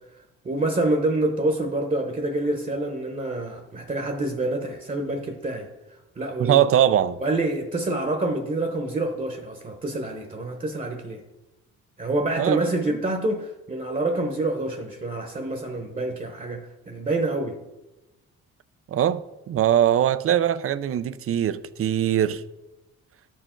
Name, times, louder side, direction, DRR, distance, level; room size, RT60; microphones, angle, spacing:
voice 1, 0.4-6.6 7.2-11.2 12.0-17.6, right 2 dB, 25° right, 1.0 m, -27 dB
voice 2, 6.4-7.2 12.4-12.7 18.9-19.2 19.5-22.4, right 10 dB, 50° right, 0.5 m, -21 dB
12.5 x 4.6 x 4.5 m
cardioid pair, 90°, 30 cm